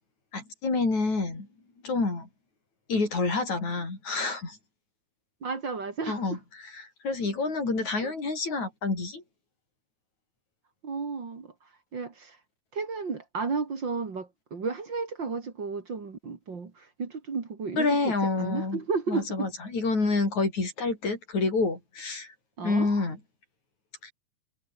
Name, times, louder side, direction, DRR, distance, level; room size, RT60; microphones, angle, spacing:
voice 1, 0.3-1.5 1.8-2.3 2.9-4.6 6.1-6.4 6.7-9.2 17.8-18.8 19.1-22.3 22.6-23.2 24.0-24.1, left 3 dB, 65° left, 9.0 m, -28 dB
voice 2, 5.4-6.4 8.0-8.1 10.8-11.5 11.9-12.4 12.7-19.5 22.6-22.9, right 4 dB, 40° right, 2.9 m, -33 dB
omnidirectional pair, 3.6 m